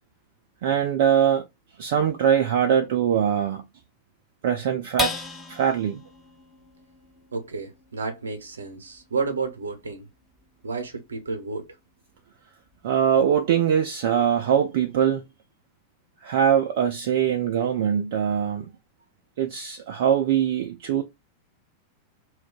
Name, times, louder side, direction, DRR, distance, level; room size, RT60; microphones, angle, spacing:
voice 1, 0.6-1.5 1.8-3.7 4.4-5.1 5.5-6.0 12.8-15.2 16.2-18.7 19.4-21.0, right 9 dB, 55° right, 0.4 m, -22 dB
sound 1, 5.0-11.7 12.2-12.3 12.7-13.1, left 3 dB, 10° left, 0.6 m, -37 dB
voice 2, 7.3-10.1 10.6-11.8, right 4 dB, 70° right, 0.8 m, -31 dB
2.3 x 2.2 x 3.6 m
figure-of-eight pair, 90°, 0 cm